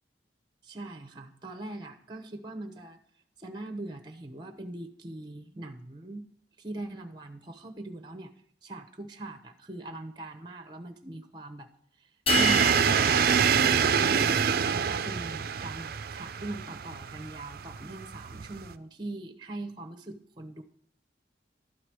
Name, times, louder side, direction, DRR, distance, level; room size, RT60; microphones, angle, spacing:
voice 1, 0.6-3.0 3.4-6.3 6.6-8.3 8.6-11.7 12.0-13.3 14.0-20.6, right 2 dB, 25° right, 9 dB, 0.9 m, -41 dB
sound 1, 12.3-14.6, left 6 dB, 30° left, 0.5 m, -33 dB
sound 2, 12.3-18.7, right 7 dB, 55° right, 0.5 m, -26 dB
12.0 x 4.9 x 6.1 m, 0.62 s
head